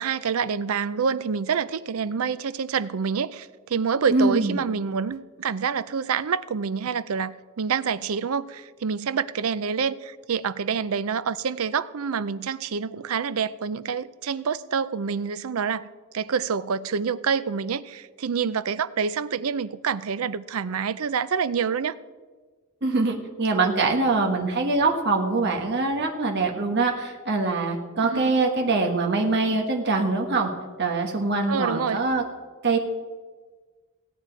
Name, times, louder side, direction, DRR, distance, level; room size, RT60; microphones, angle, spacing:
voice 1, 0.0-15.9 16.1-22.0 28.0-28.3 31.5-32.0, right 6 dB, 75° right, 0.5 m, -27 dB
voice 2, 4.1-4.6 22.8-30.5 30.8-32.2 32.6-32.8, right 3 dB, 55° right, 1.3 m, -23 dB
16.5 x 9.1 x 4.5 m
head